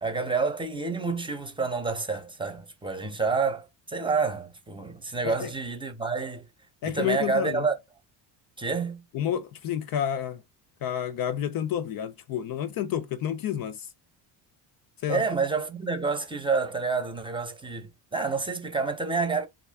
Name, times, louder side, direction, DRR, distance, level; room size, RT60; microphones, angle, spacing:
voice 1, 0.0-6.5 6.8-7.7 8.6-9.0 15.1-19.5, right 4 dB, 10° right, 0.7 m, -28 dB
voice 2, 6.8-7.7 9.1-10.4 10.8-13.9 15.0-15.2, left 10 dB, 50° left, 0.5 m, -30 dB
3.5 x 2.3 x 3.4 m
cardioid pair, 110°, 47 cm